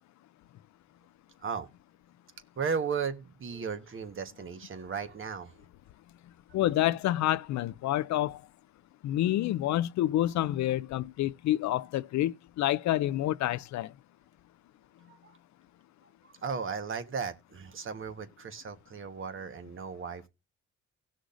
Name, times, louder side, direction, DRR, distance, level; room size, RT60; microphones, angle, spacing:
voice 1, 2.6-5.6 6.5-6.6 15.1-15.4 16.2-20.3, right 6 dB, 45° right, 1.3 m, -36 dB
voice 2, 6.5-8.4 9.0-13.9, left 14 dB, 65° left, 0.5 m, -28 dB
18.0 x 6.3 x 2.6 m
cardioid pair, 90°, 30 cm